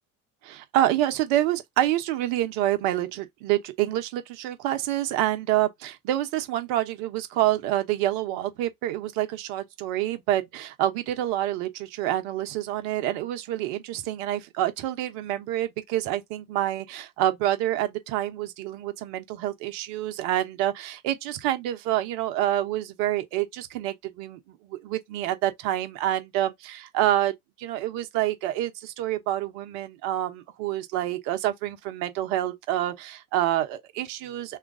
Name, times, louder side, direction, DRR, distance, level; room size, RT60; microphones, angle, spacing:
voice 1, 0.4-27.3 27.6-34.6, right 13 dB, 70° right, 1.0 m, -27 dB
3.0 x 2.4 x 3.6 m
hypercardioid pair, 80°, 44 cm